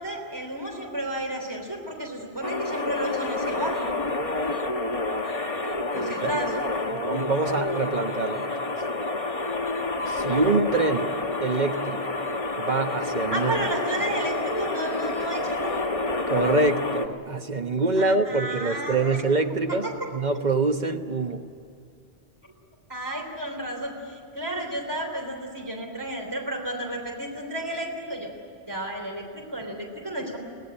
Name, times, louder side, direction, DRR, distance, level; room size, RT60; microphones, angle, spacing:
voice 1, 0.0-3.9 5.9-6.5 13.3-15.9 18.0-19.2 19.7-20.1 22.9-28.3 28.7-30.4, right 1 dB, 20° right, 1 dB, 3.3 m, -32 dB
sound 1, 2.4-17.1, left 2 dB, 35° left, 1.2 m, -29 dB
voice 2, 5.9-6.4 6.9-8.7 10.1-11.1 11.4-12.2 12.6-13.6 16.2-21.4, right 3 dB, 45° right, 6 dB, 1.3 m, -25 dB
23.5 x 17.5 x 9.8 m, 2.5 s
omnidirectional pair, 1.1 m